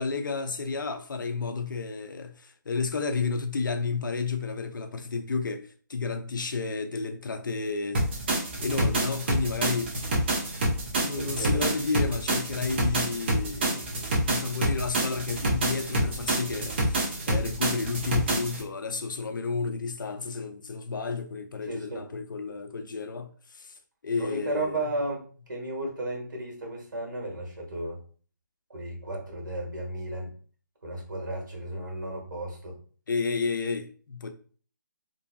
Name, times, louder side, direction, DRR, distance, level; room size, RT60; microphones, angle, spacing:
voice 1, 0.0-8.0 8.6-9.9 11.0-13.9 14.2-24.9 33.1-34.3, left 4 dB, 75° left, 0.5 m, -31 dB
sound 1, 7.9-18.6, right 1 dB, 30° right, 0.7 m, -27 dB
voice 2, 11.1-11.7 21.6-22.0 24.2-28.0 28.7-30.3 30.8-32.8, right 1 dB, 70° right, 1.4 m, -34 dB
2.9 x 2.6 x 2.2 m
hypercardioid pair, 165°, 11 cm